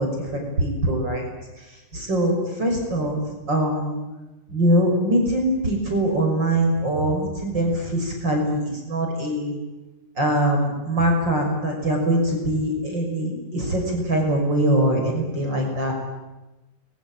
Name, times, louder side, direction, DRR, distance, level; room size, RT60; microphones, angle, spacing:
voice 1, 0.6-1.1 1.9-3.2 3.5-4.0 4.5-9.6 10.2-15.9, right 1 dB, 35° right, 1 dB, 6.6 m, -22 dB
29.5 x 22.0 x 9.0 m, 1.1 s
omnidirectional pair, 3.5 m